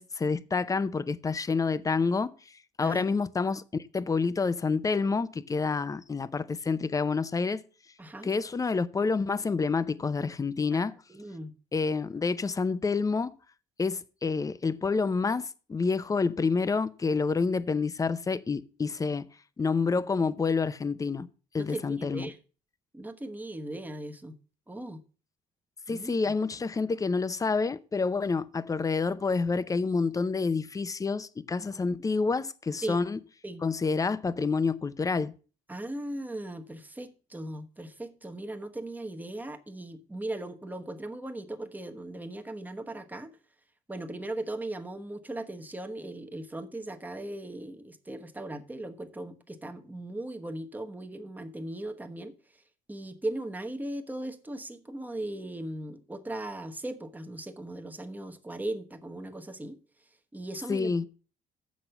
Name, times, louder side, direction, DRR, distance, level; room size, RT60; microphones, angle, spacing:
voice 1, 0.0-2.3 2.8-3.6 3.9-7.6 8.2-10.9 11.7-13.3 13.8-19.3 19.6-21.3 21.5-22.3 25.9-33.2 33.6-35.3 60.7-61.1, left 4 dB, 20° left, 0.6 m, -28 dB
voice 2, 8.0-8.3 10.7-11.5 21.6-22.4 22.9-24.3 24.7-25.0 25.9-26.3 32.8-33.0 33.4-33.6 35.7-43.3 43.9-52.3 52.9-59.8 60.3-61.1, right 1 dB, 10° right, 1.1 m, -38 dB
7.4 x 6.2 x 6.7 m
cardioid pair, 110°, 17 cm